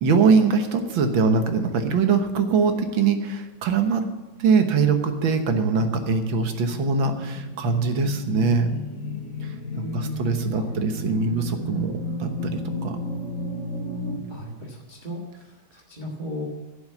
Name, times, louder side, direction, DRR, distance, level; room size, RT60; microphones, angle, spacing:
voice 1, 0.0-4.0 4.4-8.7 9.4-13.0, right 5 dB, 75° right, 7 dB, 1.9 m, -22 dB
sound 1, 4.4-14.2, left 1 dB, 40° left, 3.0 m, -34 dB
voice 2, 9.7-10.7 14.3-15.4 15.7-16.4, left 1 dB, 25° right, -2 dB, 1.4 m, -36 dB
11.5 x 7.1 x 8.9 m, 1.2 s
omnidirectional pair, 2.2 m